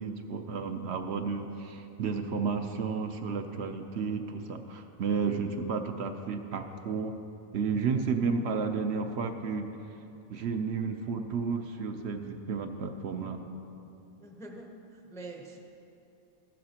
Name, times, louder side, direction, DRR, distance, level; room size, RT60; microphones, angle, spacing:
voice 1, 0.0-7.1 7.5-9.7 10.3-13.4, right 5 dB, 60° right, 6 dB, 0.8 m, -32 dB
voice 2, 14.2-14.8 15.1-15.6, right 2 dB, 5° left, 1 dB, 0.5 m, -44 dB
14.5 x 11.5 x 2.9 m, 2.9 s
omnidirectional pair, 1.5 m